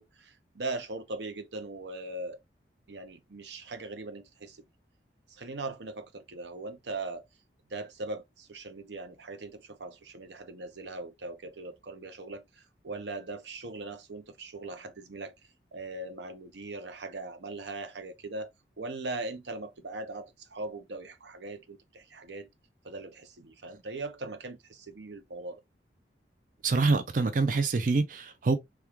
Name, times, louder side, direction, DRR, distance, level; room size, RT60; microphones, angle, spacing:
voice 1, 0.0-2.4 2.9-4.6 5.3-7.2 7.7-15.3 15.7-18.5 18.8-22.5 22.8-25.6, right 2 dB, 80° right, 0.7 m, -40 dB
voice 2, 26.6-28.6, right 3 dB, 50° right, 0.4 m, -25 dB
3.5 x 2.3 x 2.9 m
head